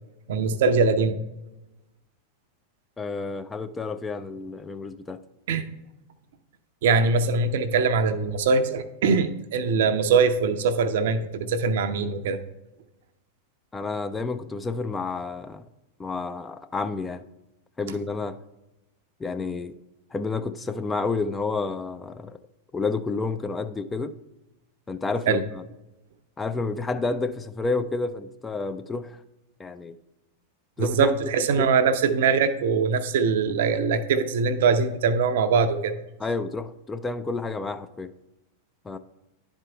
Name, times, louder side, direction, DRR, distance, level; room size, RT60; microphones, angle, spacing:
voice 1, 0.3-1.2 5.5-5.6 6.8-12.4 25.3-25.4 30.8-35.9, right 5 dB, 55° right, 0.5 m, -22 dB
voice 2, 3.0-5.2 13.7-15.6 16.0-17.2 17.8-18.4 19.2-19.8 20.1-22.4 22.7-24.1 24.9-25.6 26.4-29.2 29.6-30.0 30.8-31.1 31.6-31.7 36.2-38.1 38.8-39.0, left 3 dB, 15° left, 0.4 m, -30 dB
10.5 x 4.4 x 3.3 m
figure-of-eight pair, 90°, 0 cm